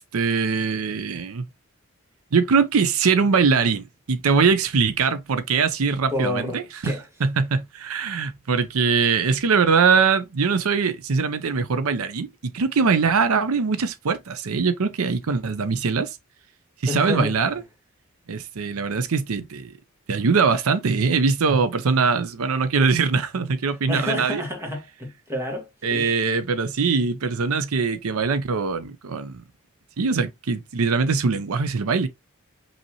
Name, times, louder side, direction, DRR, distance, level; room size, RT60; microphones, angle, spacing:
voice 1, 0.0-1.4 2.3-16.2 16.8-17.6 18.3-19.7 20.1-24.4 25.8-29.4 30.0-32.1, right 5 dB, 80° right, 0.6 m, -22 dB
voice 2, 6.1-7.0 16.9-17.4 23.9-26.1, left 1 dB, 10° right, 1.6 m, -29 dB
5.4 x 2.9 x 2.9 m
head